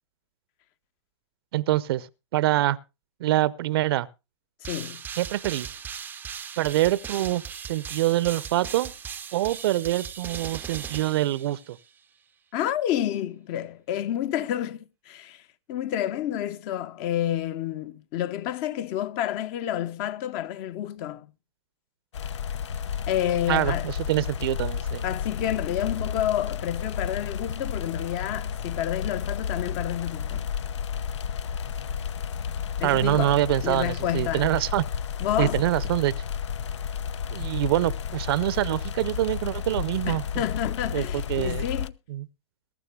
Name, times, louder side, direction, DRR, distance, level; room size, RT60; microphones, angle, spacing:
voice 1, 1.5-2.8 3.2-4.1 5.2-5.7 6.6-8.9 9.3-11.8 23.5-25.0 32.8-34.8 35.4-36.1 37.3-40.4 40.9-41.7 42.1-42.3, right 15 dB, 55° right, 0.6 m, -25 dB
voice 2, 4.6-5.0 12.5-15.4 15.7-21.3 23.1-23.9 25.0-30.4 32.8-33.4 33.6-34.5 35.2-35.7 40.1-41.9, left 11 dB, 40° left, 0.8 m, -29 dB
sound 1, 4.6-11.9, right 7 dB, 10° right, 0.6 m, -38 dB
sound 2, 22.1-41.9, left 7 dB, 70° left, 0.6 m, -32 dB
21.5 x 12.0 x 2.2 m
hypercardioid pair, 120°, 15 cm